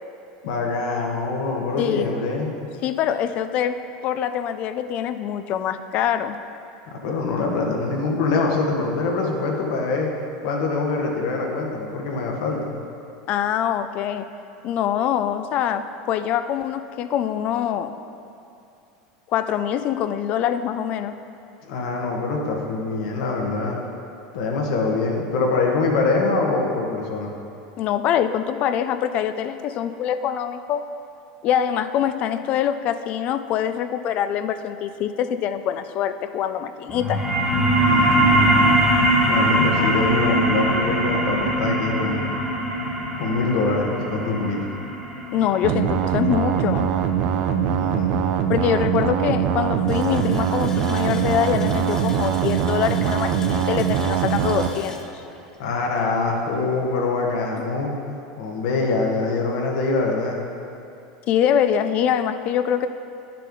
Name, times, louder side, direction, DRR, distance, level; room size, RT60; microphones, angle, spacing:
voice 1, 0.4-2.5 6.9-10.1 10.4-12.8 21.7-23.8 24.3-27.3 37.8-38.8 39.3-42.3 43.2-44.7 47.5-48.4 55.6-58.0 58.4-60.4, left 3 dB, 70° left, 0 dB, 1.5 m, -24 dB
voice 2, 1.8-2.1 2.8-3.8 4.0-6.4 13.3-14.3 14.6-18.0 19.3-21.2 27.8-30.8 31.4-37.2 45.3-46.9 48.5-55.0 61.3-62.9, left 9 dB, 50° left, 10 dB, 0.5 m, -24 dB
sound 1, 36.9-48.0, right 1 dB, 5° right, 1.5 m, -22 dB
sound 2, 45.6-54.7, right 8 dB, 60° right, 0.6 m, -22 dB
Water tap faucet, 49.9-56.4 56.7-56.8 57.3-57.4, left 2 dB, 25° left, 1.0 m, -37 dB
10.0 x 6.6 x 3.9 m, 2.6 s
hypercardioid pair, 105°, 3 cm